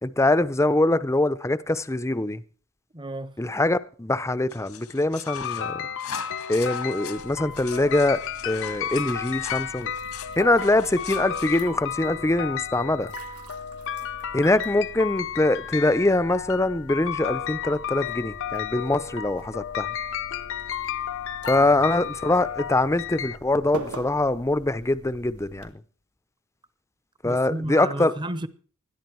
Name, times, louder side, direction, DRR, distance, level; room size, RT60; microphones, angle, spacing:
voice 1, 0.0-2.4 3.4-5.9 6.5-9.9 10.4-13.1 14.3-19.9 21.5-25.7 27.2-28.1, left 2 dB, 15° left, 0.6 m, -23 dB
voice 2, 2.9-3.3 21.6-21.8 27.2-28.5, right 1 dB, 20° right, 0.9 m, -33 dB
sound 1, 4.5-11.6, left 7 dB, 85° left, 1.9 m, -41 dB
sound 2, 5.3-23.4, left 9 dB, 60° left, 0.8 m, -33 dB
sound 3, 7.2-25.7, right 2 dB, 85° right, 2.3 m, -45 dB
20.0 x 13.5 x 4.6 m
head